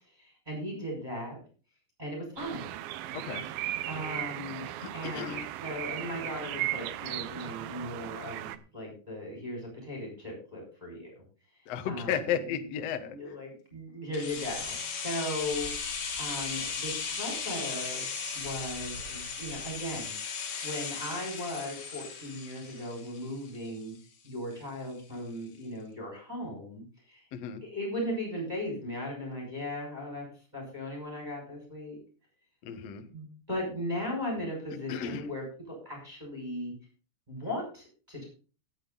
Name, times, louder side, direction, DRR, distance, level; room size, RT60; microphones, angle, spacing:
voice 1, 0.1-1.4 2.0-2.7 3.9-4.6 4.9-11.1 11.9-12.6 13.0-14.8 15.0-18.0 18.3-20.1 20.6-23.9 24.2-27.2 27.6-30.3 30.5-32.0 32.9-36.7 37.3-38.3, left 1 dB, 10° right, -2 dB, 5.9 m, -37 dB
sound 1, 2.4-8.6, right 14 dB, 80° right, 2.2 m, -37 dB
voice 2, 3.1-3.4 4.8-5.5 11.7-13.2 27.3-27.6 32.6-33.0 34.9-35.2, left 8 dB, 85° left, 8 dB, 1.4 m, -34 dB
sound 2, 14.1-24.0 24.3-24.4, left 5 dB, 55° left, 3.8 m, -37 dB
17.5 x 7.9 x 4.0 m, 0.36 s
omnidirectional pair, 5.1 m